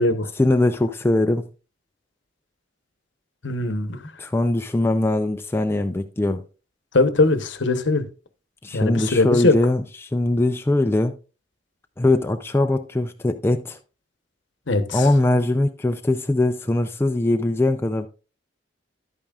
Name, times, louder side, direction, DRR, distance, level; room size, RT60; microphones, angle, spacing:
voice 1, 0.4-1.4 4.2-6.4 8.6-11.2 12.0-13.8 14.9-18.1, left 2 dB, 10° left, 0.4 m, -21 dB
voice 2, 3.4-4.0 6.9-8.0 8.7-9.5 14.7-15.0, left 2 dB, 65° left, 1.0 m, -20 dB
11.0 x 8.7 x 2.4 m
head